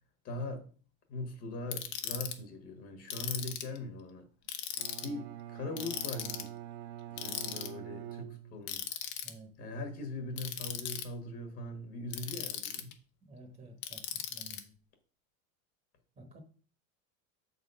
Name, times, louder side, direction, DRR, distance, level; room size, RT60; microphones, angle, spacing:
voice 1, 0.2-0.6 1.1-4.3 5.0-6.5 7.1-8.8 9.6-12.9, left 2 dB, 35° left, 4 dB, 1.3 m, -41 dB
Ratchet pawl, 1.7-2.3 3.1-3.8 4.5-5.1 5.8-6.5 7.2-7.7 8.7-9.3 10.4-11.0 12.1-12.9 13.8-14.6, left 11 dB, 70° left, 1.2 m, -38 dB
Bowed string instrument, 4.8-9.0, right 13 dB, 55° right, 0.6 m, -45 dB
voice 2, 9.2-9.6 13.2-14.8 16.1-16.4, right 2 dB, 15° right, 2 dB, 1.0 m, -53 dB
7.3 x 4.1 x 5.4 m, 0.41 s
supercardioid pair, 155°, 43 cm